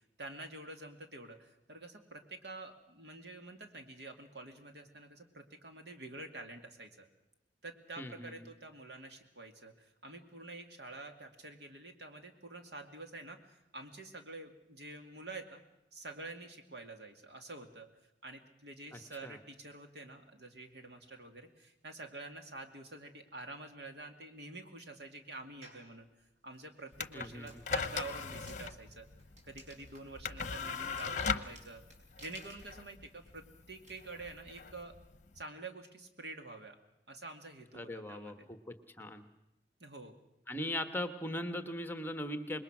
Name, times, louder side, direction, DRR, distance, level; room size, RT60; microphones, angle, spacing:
voice 1, 0.2-7.1 7.6-15.6 15.9-17.9 18.2-26.1 26.4-29.1 29.5-31.8 32.2-34.9 35.3-36.8 37.1-38.5 39.8-40.2, right 2 dB, 70° right, 5 dB, 2.4 m, -48 dB
voice 2, 8.0-8.5 18.9-19.4 27.1-27.6 37.7-39.2 40.5-42.6, left 1 dB, 10° left, 8 dB, 1.3 m, -40 dB
sound 1, 25.6-25.9 26.5-33.9, right 1 dB, 45° right, 5.3 m, -58 dB
sound 2, 26.9-35.4, left 5 dB, 45° left, 0.9 m, -39 dB
26.5 x 21.0 x 6.1 m, 0.89 s
head